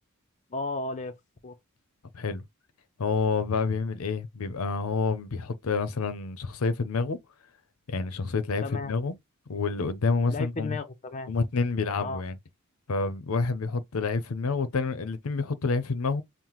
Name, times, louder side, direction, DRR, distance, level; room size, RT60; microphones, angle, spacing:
voice 1, 0.5-1.1 1.4-1.5 8.6-8.9 10.3-11.3 12.0-12.2, left 3 dB, 35° left, 0.5 m, -34 dB
voice 2, 3.0-7.2 7.9-9.1 9.5-10.8 11.3-12.4 12.9-16.2, left 4 dB, 75° left, 0.6 m, -28 dB
5.6 x 2.1 x 3.0 m
head